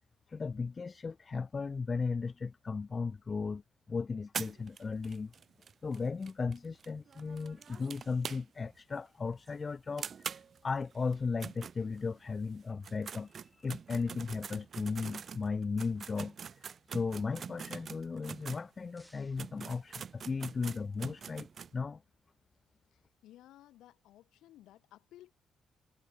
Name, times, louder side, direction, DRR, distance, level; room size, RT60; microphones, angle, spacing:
voice 1, 0.3-3.6 3.9-5.3 5.8-16.3 16.9-22.0, left 4 dB, 35° left, 0.3 m, -36 dB
sound 1, 4.3-8.8 9.1-9.2 9.5-9.6 10.0-12.3 12.7-18.6 19.1-19.2 19.4-21.7, right 7 dB, 50° right, 0.4 m, -44 dB
sound 2, 18.4-20.6, equal, 5° right, 2.7 m, -68 dB
voice 2, 22.9-25.3, left 14 dB, 85° left, 6.7 m, -57 dB
cardioid pair, 90°, 0 cm